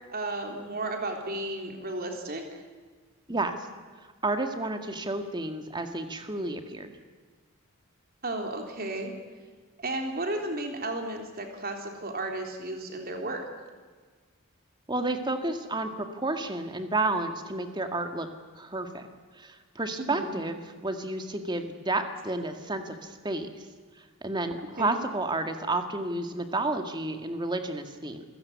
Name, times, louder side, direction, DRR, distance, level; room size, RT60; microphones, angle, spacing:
voice 1, 0.1-2.4 8.2-9.1 9.8-13.5 20.0-20.4 24.8-25.0, right 2 dB, 40° right, 3 dB, 3.6 m, -33 dB
voice 2, 4.2-7.0 14.9-18.3 18.6-19.1 19.4-23.7 24.2-28.2, right 2 dB, 20° right, 6 dB, 1.9 m, -31 dB
27.5 x 16.5 x 9.6 m, 1.5 s
head